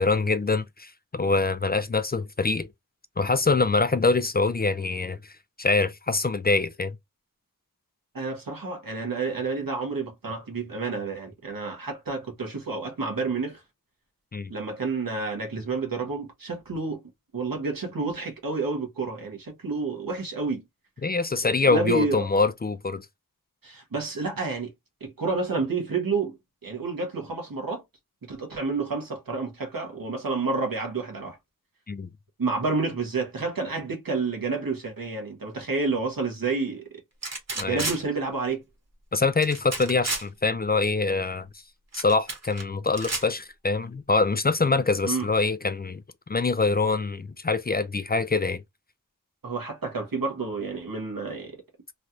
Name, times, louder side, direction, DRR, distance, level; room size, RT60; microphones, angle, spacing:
voice 1, 0.0-2.7 3.2-5.3 5.6-6.9 14.3-14.5 21.0-23.1 31.9-32.1 37.6-37.8 39.1-41.5 41.9-46.0 46.3-48.6, left 3 dB, 30° left, 0.3 m, -24 dB
voice 2, 8.1-13.6 14.5-17.0 17.3-20.6 21.4-22.3 23.6-24.7 25.0-26.4 26.6-27.8 28.2-31.4 32.4-36.8 37.6-38.6 45.1-45.3 49.4-51.6, right 4 dB, 85° right, 1.1 m, -29 dB
sound 1, 37.2-38.0 39.4-40.2 41.9-42.6 42.9-43.2, right 2 dB, 50° right, 1.1 m, -31 dB
3.2 x 2.4 x 2.7 m
wide cardioid pair, 55°, 34 cm